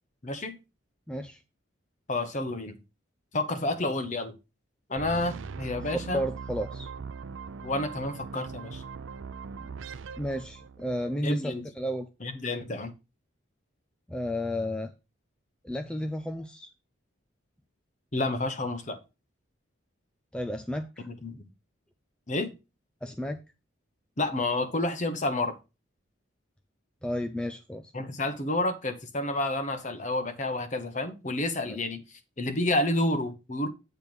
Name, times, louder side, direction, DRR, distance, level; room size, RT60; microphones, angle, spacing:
voice 1, 0.2-0.6 2.1-2.8 3.3-4.4 4.9-6.2 7.6-8.8 11.2-11.6 12.2-12.9 18.1-19.0 21.1-21.4 22.3-22.5 24.2-25.6 27.9-32.0 32.4-33.7, left 2 dB, 35° left, 9 dB, 1.0 m, -30 dB
voice 2, 1.1-1.4 5.8-6.9 9.6-9.7 10.2-12.1 14.1-14.9 15.6-16.7 20.3-21.1 23.0-23.4 27.0-27.9 31.7-31.8, equal, 5° left, 6 dB, 0.4 m, -33 dB
sound 1, 5.0-11.1, right 5 dB, 75° right, 0.5 m, -40 dB
8.8 x 3.3 x 6.1 m, 0.28 s
head